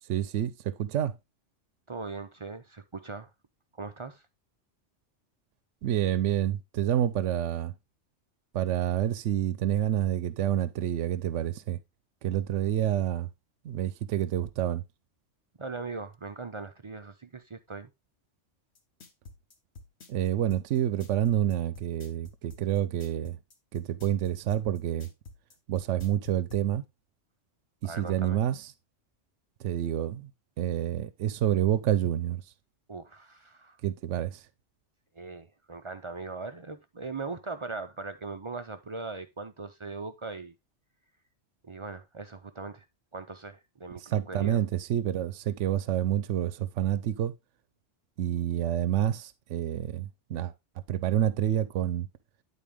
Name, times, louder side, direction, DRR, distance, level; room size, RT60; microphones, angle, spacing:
voice 1, 0.1-1.1 5.8-7.7 8.5-11.8 12.2-13.3 13.6-14.8 20.1-23.4 23.7-25.1 25.7-26.8 27.8-28.6 29.6-30.3 30.6-32.4 33.8-34.4 44.1-47.3 48.2-50.5 50.9-52.1, right 11 dB, 80° right, 0.9 m, -28 dB
voice 2, 1.9-3.3 3.7-4.3 15.6-17.9 27.8-28.4 32.9-33.8 35.1-40.5 41.6-42.9 43.1-44.6, right 3 dB, 40° right, 0.4 m, -40 dB
sound 1, 18.7-26.6, left 3 dB, 60° left, 1.5 m, -48 dB
10.0 x 4.1 x 3.5 m
omnidirectional pair, 1.2 m